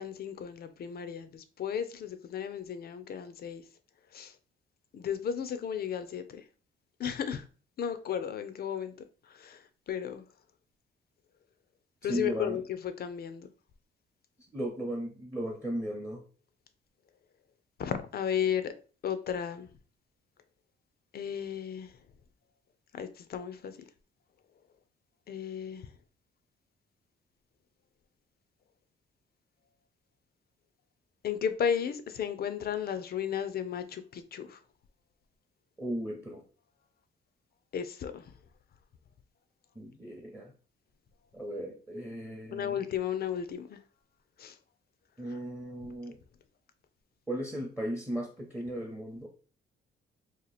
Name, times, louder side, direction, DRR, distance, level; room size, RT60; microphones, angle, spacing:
voice 1, 0.0-3.6 4.1-4.3 4.9-6.4 7.0-7.4 7.8-8.9 9.3-10.2 12.0-13.5 17.8-18.7 19.0-19.7 21.1-21.9 22.9-23.7 25.3-25.9 31.2-34.6 37.7-38.2 42.5-43.8 44.4-44.6, left 8 dB, 50° left, 0.5 m, -34 dB
voice 2, 12.0-12.6 14.5-16.2 35.8-36.4 39.8-40.5 41.3-42.8 45.2-46.2 47.3-49.3, right 1 dB, 5° right, 0.8 m, -36 dB
2.9 x 2.5 x 4.0 m
cardioid pair, 90°, 20 cm